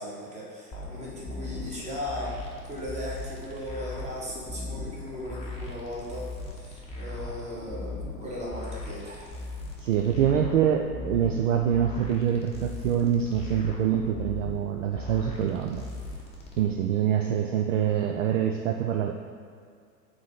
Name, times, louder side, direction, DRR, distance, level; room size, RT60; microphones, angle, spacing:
voice 1, 0.0-9.4, left 1 dB, 15° right, -5 dB, 1.5 m, -37 dB
sound 1, 0.7-16.6, left 2 dB, 10° left, 0.9 m, -38 dB
voice 2, 9.8-15.8 16.6-19.1, right 9 dB, 50° right, 3 dB, 0.5 m, -25 dB
4.8 x 4.2 x 5.7 m, 2.3 s
figure-of-eight pair, 100°, 49 cm